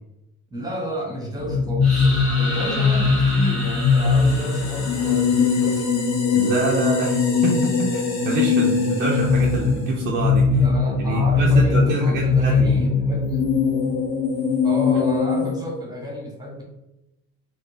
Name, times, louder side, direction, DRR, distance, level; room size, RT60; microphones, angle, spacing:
voice 1, 0.5-2.1 2.4-5.9 10.6-13.5 14.6-16.6, equal, 10° right, -2 dB, 0.8 m, -31 dB
sound 1, 1.4-15.5, left 5 dB, 25° left, 0.6 m, -20 dB
sound 2, 1.8-5.6, left 1 dB, 65° left, 1.2 m, -32 dB
sound 3, 3.3-10.1, left 3 dB, 40° left, 1.0 m, -37 dB
voice 2, 6.3-10.6 11.0-12.8, right 3 dB, 25° right, -2 dB, 0.4 m, -26 dB
3.7 x 2.1 x 2.5 m, 0.91 s
figure-of-eight pair, 50°, 43 cm